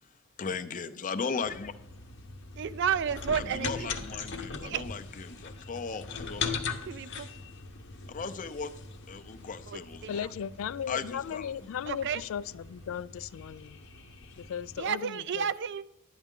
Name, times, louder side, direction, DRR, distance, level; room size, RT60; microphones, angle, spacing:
voice 1, 0.4-1.7 3.3-7.1 8.1-8.7 9.1-10.3 10.9-11.5, left 5 dB, 40° left, 0.6 m, -37 dB
sound 1, 1.4-14.9, left 4 dB, 60° left, 0.9 m, -41 dB
voice 2, 2.6-4.0 4.6-4.8 6.9-7.3 9.7-10.1 11.9-12.2 14.8-15.9, right 7 dB, 60° right, 0.4 m, -31 dB
voice 3, 10.1-13.8 14.4-15.5, left 8 dB, 85° left, 0.3 m, -36 dB
11.5 x 9.1 x 3.7 m
head